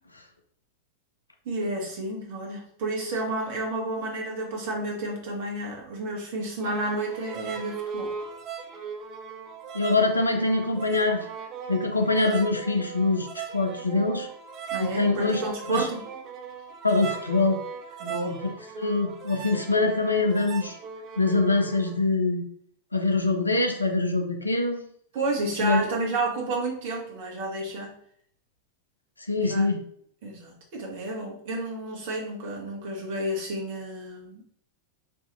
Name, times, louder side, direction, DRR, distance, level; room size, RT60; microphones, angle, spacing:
voice 1, 1.4-8.1 14.7-16.0 18.0-18.5 25.1-27.9 29.4-29.6 30.2-34.4, right 2 dB, 50° right, -1 dB, 1.3 m, -31 dB
sound 1, 6.6-22.0, right 7 dB, 35° right, 0.5 m, -38 dB
voice 2, 9.7-11.3 11.7-13.3 13.5-14.3 14.8-15.4 15.7-15.9 16.8-17.6 18.2-18.4 18.8-20.8 21.2-22.4 22.9-24.8 25.6-25.8 29.3-29.8, left 3 dB, 80° left, 4 dB, 0.6 m, -24 dB
4.7 x 2.7 x 2.6 m, 0.62 s
figure-of-eight pair, 90°, 0 cm